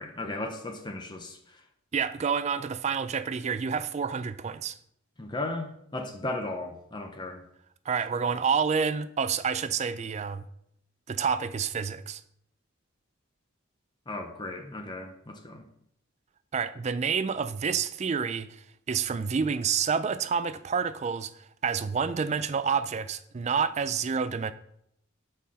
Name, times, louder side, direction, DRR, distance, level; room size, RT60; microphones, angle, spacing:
voice 1, 0.0-1.4 5.2-7.4 14.1-15.6, left 2 dB, 20° left, 0.6 m, -36 dB
voice 2, 1.9-4.8 7.9-10.4 11.1-12.2 16.5-24.5, right 6 dB, 35° right, 0.3 m, -29 dB
5.6 x 4.2 x 6.2 m
head